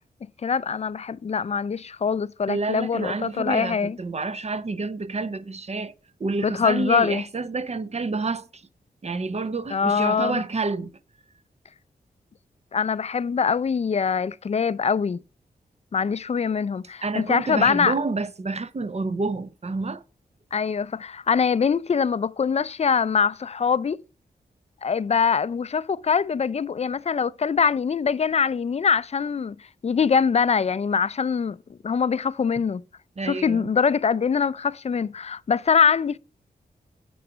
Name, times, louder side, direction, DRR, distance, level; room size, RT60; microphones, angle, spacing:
voice 1, 0.4-4.0 6.4-7.2 9.7-10.4 12.7-15.2 15.9-17.9 20.5-24.0 24.8-29.6 29.8-32.8 33.2-36.2, left 6 dB, 40° left, 0.4 m, -23 dB
voice 2, 2.5-5.9 6.2-8.6 9.0-10.9 17.0-20.0 33.2-33.7, right 3 dB, 40° right, 0.7 m, -29 dB
8.6 x 3.9 x 6.0 m
cardioid pair, 45°, 17 cm